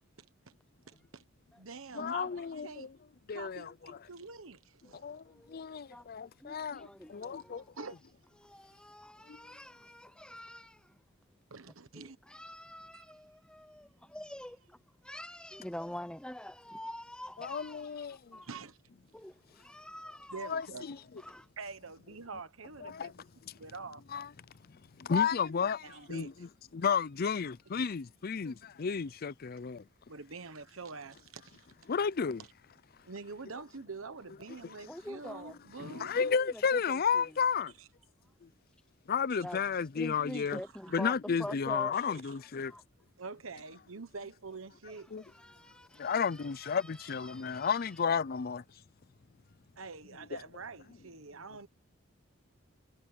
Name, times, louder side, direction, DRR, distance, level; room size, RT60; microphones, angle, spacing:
voice 1, 0.9-1.2 1.6-2.9 3.3-5.1 7.8-8.0 11.5-12.2 12.9-13.1 18.4-18.8 20.3-20.9 21.6-23.1 23.6-24.0 25.8-26.5 30.1-31.7 32.4-32.5 33.0-36.1 37.8-37.9 39.3-39.4 40.3-40.7 41.9-42.3 43.2-45.1 49.8-51.7, right 4 dB, 85° right, 1.2 m, -46 dB
voice 2, 1.9-2.9 3.3-3.7 4.9-7.6 9.3-9.4 17.4-18.4 20.4-21.0 22.8-23.1 23.5-23.6 24.1-24.3 25.0-29.8 31.9-32.4 35.8-37.7 38.4-38.5 39.1-40.6 40.9-42.7 45.1-45.2 46.0-48.6 50.3-50.4, left 6 dB, 50° left, 0.5 m, -32 dB
voice 3, 5.3-5.6 5.9-6.1 6.4-7.9 8.4-11.0 12.0-14.8 15.0-18.5 19.1-20.6 21.2-21.5 34.9-35.6 36.2-37.2 39.4-39.6 40.0-42.2 42.6-42.8 45.2-46.7 47.2-47.7, left 1 dB, 5° left, 0.7 m, -46 dB
head